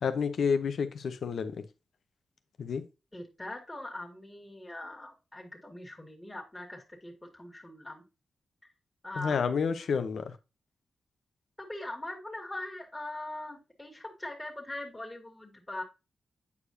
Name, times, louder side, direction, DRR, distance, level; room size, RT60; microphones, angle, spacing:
voice 1, 0.0-1.6 2.6-2.8 9.2-10.3, left 6 dB, 75° left, 0.8 m, -29 dB
voice 2, 3.1-8.0 9.0-9.5 11.6-15.8, left 1 dB, 15° left, 1.9 m, -41 dB
8.2 x 4.9 x 2.7 m
cardioid pair, 70°, 0 cm